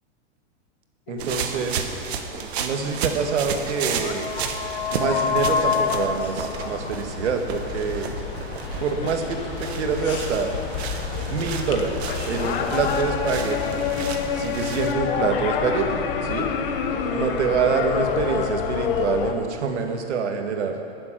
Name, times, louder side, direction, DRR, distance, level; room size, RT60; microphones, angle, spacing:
sound 1, 1.1-19.3, left 7 dB, 50° left, 1.2 m, -28 dB
voice 1, 1.1-1.9 2.6-4.3 4.9-8.1 8.8-10.6 11.1-13.8 14.4-16.5 17.1-20.8, right 5 dB, 90° right, 4 dB, 1.8 m, -26 dB
sound 2, 1.2-14.9, right 7 dB, 65° right, 1.3 m, -33 dB
19.5 x 7.6 x 6.1 m, 2.5 s
supercardioid pair, 165°, 34 cm